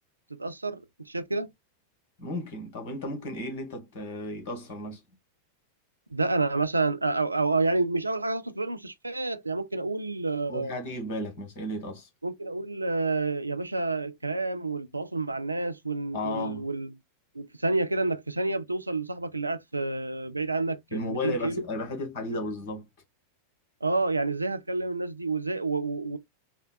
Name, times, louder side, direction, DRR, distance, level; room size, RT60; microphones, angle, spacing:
voice 1, 0.4-1.5 6.1-10.8 12.2-16.9 17.3-21.6 22.3-22.4 23.8-26.2, right 3 dB, 85° right, 0.3 m, -29 dB
voice 2, 2.2-5.0 10.5-12.1 16.1-16.7 20.9-22.9, left 1 dB, 50° left, 1.4 m, -34 dB
3.7 x 2.2 x 2.2 m
figure-of-eight pair, 90°, 0 cm